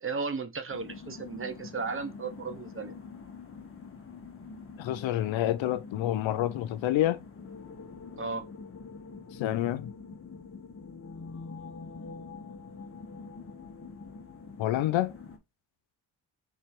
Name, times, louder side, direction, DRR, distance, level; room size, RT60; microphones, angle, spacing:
voice 1, 0.0-3.0 8.2-8.5, right 4 dB, 30° right, 0.7 m, -35 dB
sound 1, 0.7-15.4, left 4 dB, 30° left, 1.1 m, -45 dB
voice 2, 4.8-7.2 9.3-9.9 14.6-15.2, left 13 dB, 75° left, 0.6 m, -28 dB
3.4 x 3.3 x 4.5 m
cardioid pair, 90°, 46 cm